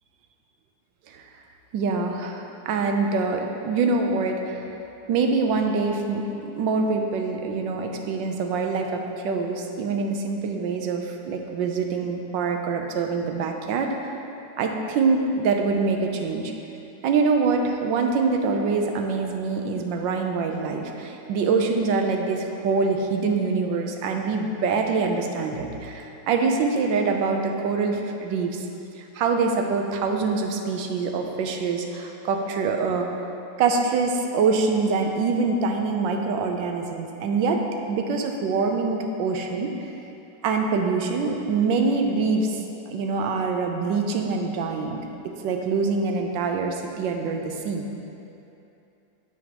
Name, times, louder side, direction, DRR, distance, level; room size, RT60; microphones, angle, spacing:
voice 1, 1.7-4.7 5.1-14.1 14.6-16.5 17.0-28.7 29.0-33.1 33.6-37.6 37.9-39.7 40.4-42.6 42.9-45.0 45.2-47.9, right 4 dB, 80° right, 3 dB, 1.4 m, -25 dB
9.2 x 7.3 x 2.9 m, 2.9 s
omnidirectional pair, 2.0 m